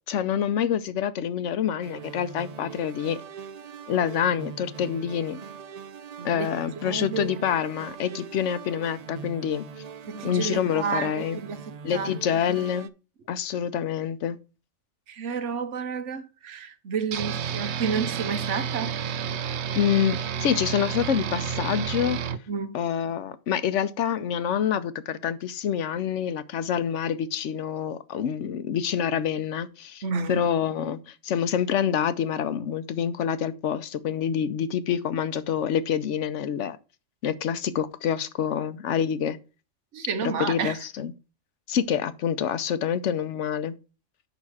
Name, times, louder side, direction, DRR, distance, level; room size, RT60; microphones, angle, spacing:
voice 1, 0.1-3.2 3.9-5.4 6.2-9.6 10.2-11.4 11.8-12.9 13.3-14.4 19.7-22.2 22.7-30.0 30.3-36.8 37.2-39.4 40.2-41.1 41.7-43.7, left 8 dB, 85° left, 1.1 m, -27 dB
sound 1, 1.8-12.9, right 6 dB, 50° right, 0.5 m, -42 dB
voice 2, 6.2-6.5 6.9-7.3 10.1-11.6 11.9-12.1 15.1-19.0 22.5-22.8 30.0-30.4 39.9-40.8, right 6 dB, 85° right, 1.3 m, -30 dB
sound 2, 17.1-22.4, right 7 dB, 70° right, 0.9 m, -30 dB
6.7 x 5.9 x 4.8 m
omnidirectional pair, 1.2 m